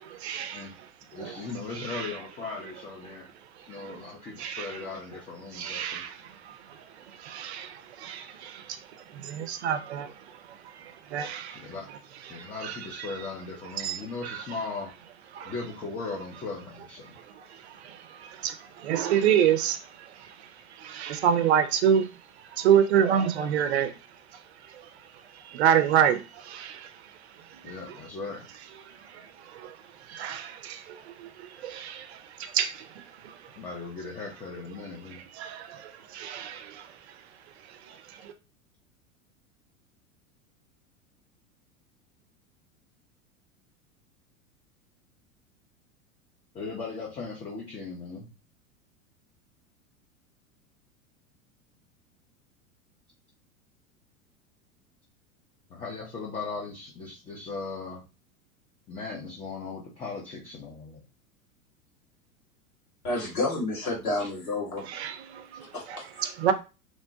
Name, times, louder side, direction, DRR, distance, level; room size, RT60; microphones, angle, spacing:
voice 1, 0.1-0.6 1.2-1.3 1.9-2.1 3.9-4.0 4.4-4.6 5.6-6.1 6.5-6.6 7.2-8.6 9.2-10.1 11.1-11.6 12.3-12.8 13.8-14.0 15.3-15.5 17.8-19.8 20.8-22.1 22.6-23.9 25.5-26.9 29.6-29.7 30.1-31.3 31.6-32.1 32.4-32.8 33.2-33.3 35.4-36.8 38.2-38.3 64.9-65.6 66.2-66.5, right 9 dB, 50° right, 0.5 m, -27 dB
voice 2, 1.1-3.3 3.7-6.0 11.5-11.9 12.3-14.9 15.4-17.2 27.6-28.5 33.6-35.2 46.5-48.3 55.7-58.0 58.9-61.0 64.2-64.3, left 4 dB, 15° left, 0.5 m, -38 dB
voice 3, 63.0-64.9 65.7-66.1, left 2 dB, 75° left, 1.6 m, -30 dB
3.0 x 2.0 x 2.6 m
figure-of-eight pair, 85°, 43 cm